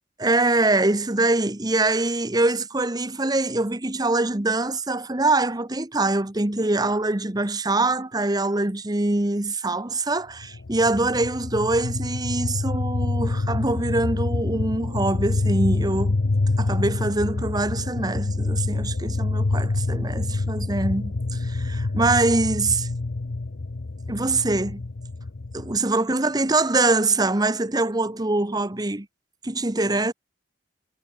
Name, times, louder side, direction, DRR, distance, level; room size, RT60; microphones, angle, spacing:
voice 1, 0.2-16.2 16.6-22.9 24.1-24.8 25.5-29.1 29.4-30.1, right 2 dB, 20° right, 1.2 m, -24 dB
sound 1, 10.4-25.8, left 3 dB, 90° left, 0.8 m, -27 dB
head